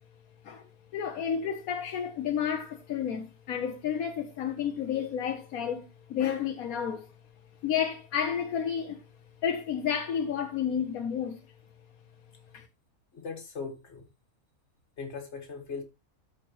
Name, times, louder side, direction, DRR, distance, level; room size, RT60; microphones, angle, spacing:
voice 1, 0.9-5.8 6.1-7.1 7.6-9.0 9.4-11.4 12.5-12.6, left 8 dB, 80° left, 1.3 m, -31 dB
voice 2, 13.1-14.1 15.0-15.8, left 5 dB, 50° left, 2.1 m, -39 dB
13.5 x 5.1 x 3.1 m
omnidirectional pair, 1.5 m